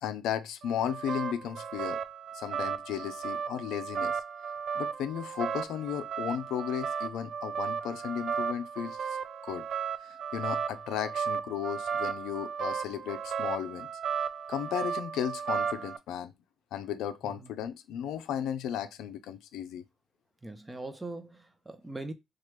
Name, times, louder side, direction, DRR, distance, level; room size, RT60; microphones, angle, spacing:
voice 1, 0.0-2.0 2.3-4.2 4.7-9.2 9.4-9.6 10.3-13.9 14.5-16.3 16.7-19.8, left 9 dB, 85° left, 0.4 m, -35 dB
sound 1, 0.6-16.0, right 7 dB, 60° right, 0.4 m, -35 dB
voice 2, 20.4-22.1, right 2 dB, 15° right, 0.6 m, -41 dB
2.9 x 2.3 x 3.2 m
cardioid pair, 90°, 0 cm